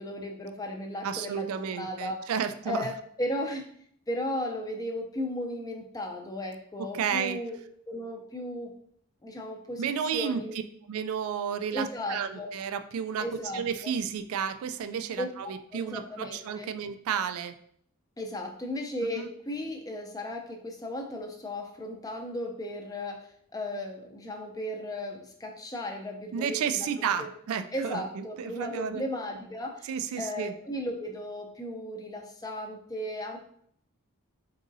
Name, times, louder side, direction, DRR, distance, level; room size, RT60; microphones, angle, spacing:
voice 1, 0.0-2.3 2.7-3.6 4.1-7.6 7.9-8.7 9.2-10.6 11.7-12.5 13.2-13.9 15.2-16.7 18.2-27.3 27.7-29.9 30.2-33.4, left 1 dB, 15° left, 3 dB, 0.5 m, -35 dB
voice 2, 1.0-2.9 6.8-7.4 9.8-10.4 10.9-13.3 13.5-17.6 19.2-19.3 26.3-29.0 29.8-30.5, right 7 dB, 70° right, 10 dB, 0.3 m, -32 dB
4.0 x 3.6 x 2.6 m, 0.65 s
head